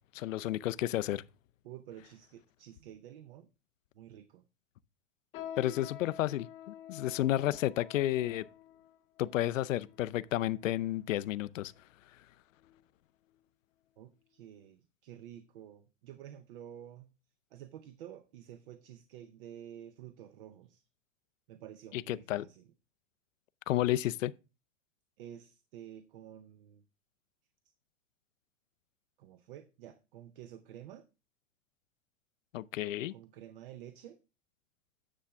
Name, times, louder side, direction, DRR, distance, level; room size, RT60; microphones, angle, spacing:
voice 1, 0.1-1.2 5.6-8.5 9.2-11.7 21.9-22.5 23.7-24.3 32.5-33.1, left 14 dB, 90° left, 0.6 m, -31 dB
voice 2, 1.6-3.5 3.9-4.4 14.0-17.1 17.5-20.8 21.5-22.7 25.2-26.8 29.2-31.1 33.1-34.2, right 11 dB, 45° right, 0.7 m, -50 dB
sound 1, 5.3-11.0 11.7-11.8 12.5-12.8 13.2-13.4 14.1-14.2, left 10 dB, 15° left, 0.6 m, -49 dB
9.9 x 7.2 x 3.5 m
supercardioid pair, 165°, 38 cm